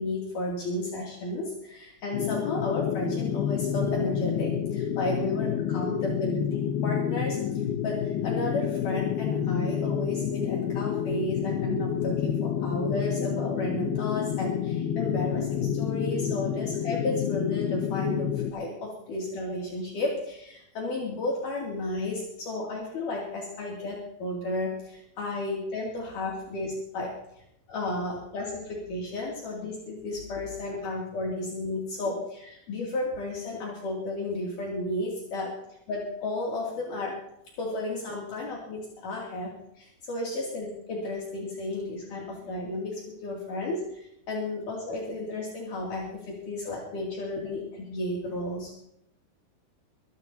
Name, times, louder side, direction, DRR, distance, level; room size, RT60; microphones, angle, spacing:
voice 1, 0.0-35.5 35.9-37.1 37.6-48.8, left 2 dB, 60° left, -3 dB, 4.2 m, -33 dB
sound 1, 2.1-18.5, left 9 dB, 90° left, 2.9 m, -29 dB
23.5 x 14.5 x 2.8 m, 0.76 s
omnidirectional pair, 4.2 m